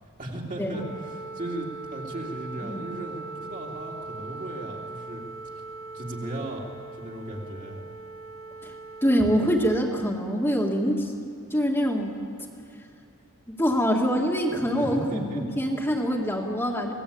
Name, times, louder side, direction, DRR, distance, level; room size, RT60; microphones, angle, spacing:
voice 1, 0.2-5.2 5.9-6.7 6.9-7.8 14.5-15.4, right 1 dB, 40° right, -1 dB, 3.3 m, -36 dB
Wind instrument woodwind instrument, 0.7-9.9, right 3 dB, 60° left, 2.5 m, -40 dB
voice 2, 9.0-11.1 11.5-12.1 13.6-16.9, equal, 10° left, -1 dB, 2.1 m, -24 dB
27.0 x 19.5 x 8.7 m, 2.6 s
head